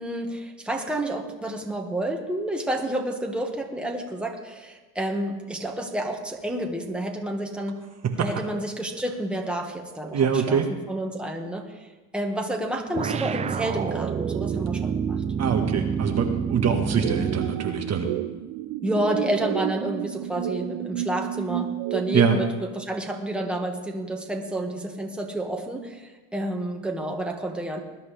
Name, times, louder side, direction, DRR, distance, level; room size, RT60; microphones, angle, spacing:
voice 1, 0.0-7.8 8.2-15.2 18.8-27.8, right 1 dB, ahead, 1 dB, 1.7 m, -30 dB
voice 2, 10.1-10.7 15.4-18.1 22.1-22.4, right 6 dB, 35° right, 3 dB, 1.5 m, -24 dB
sound 1, 12.9-17.7, right 7 dB, 20° right, 0.3 m, -28 dB
sound 2, 17.0-22.3, right 13 dB, 75° right, 0.7 m, -31 dB
20.5 x 10.5 x 3.4 m, 1.2 s
supercardioid pair, 100°, 43 cm